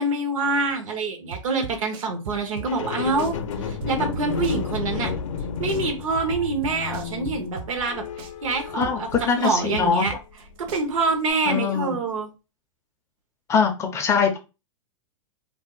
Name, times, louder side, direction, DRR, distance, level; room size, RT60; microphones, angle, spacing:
voice 1, 0.0-3.4 3.6-5.1 5.6-9.1 9.3-10.1 10.6-12.3, right 3 dB, 75° right, 4 dB, 1.0 m, -26 dB
sound 1, 1.3-2.9 3.2-5.4 5.7-7.9 8.2-10.4 10.7-11.3, right 6 dB, 45° right, 0.5 m, -37 dB
sound 2, 2.7-10.1 10.7-10.8, left 6 dB, 70° left, 0.5 m, -32 dB
voice 2, 8.7-10.1 11.5-12.0 13.5-14.4, left 6 dB, 15° left, 5 dB, 0.4 m, -22 dB
2.6 x 2.0 x 3.7 m, 0.29 s
hypercardioid pair, 140°, 17 cm